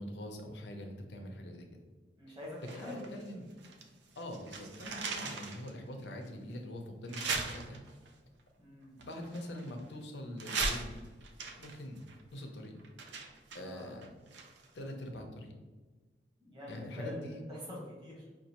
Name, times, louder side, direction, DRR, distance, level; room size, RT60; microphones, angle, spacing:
voice 1, 0.0-1.6 2.7-3.5 4.2-7.8 9.0-11.0 11.6-12.0 12.3-12.7 13.5-14.1 14.7-15.5 16.7-17.5, left 1 dB, 80° left, 3 dB, 0.6 m, -43 dB
voice 2, 2.2-3.1 8.6-9.0 13.5-14.0 16.4-18.3, left 1 dB, 25° right, -6 dB, 1.4 m, -46 dB
sound 1, 2.6-3.9 4.2-5.7 6.2-6.3 7.1-8.1 9.0-10.0 10.4-14.8 15.1-15.2, right 4 dB, 80° right, 0.5 m, -39 dB
5.2 x 2.4 x 2.9 m, 1.3 s
head